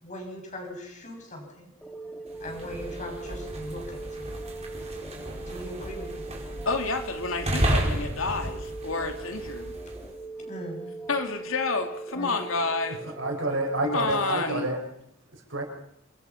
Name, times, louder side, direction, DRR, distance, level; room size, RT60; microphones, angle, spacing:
voice 1, 0.0-1.7 2.4-4.3 5.5-6.2 10.4-10.8 12.1-12.3, equal, 40° left, 2 dB, 6.8 m, -39 dB
sound 1, 1.8-14.2, right 3 dB, 5° left, 3.7 m, -40 dB
sound 2, 2.3-10.1, equal, 35° right, 4.8 m, -33 dB
voice 2, 6.7-9.7 11.1-13.0 13.8-14.7, left 3 dB, 80° left, 6 dB, 2.5 m, -29 dB
voice 3, 13.2-14.8 15.3-15.6, right 2 dB, 70° right, 2 dB, 5.9 m, -28 dB
28.0 x 21.5 x 5.8 m, 0.77 s
head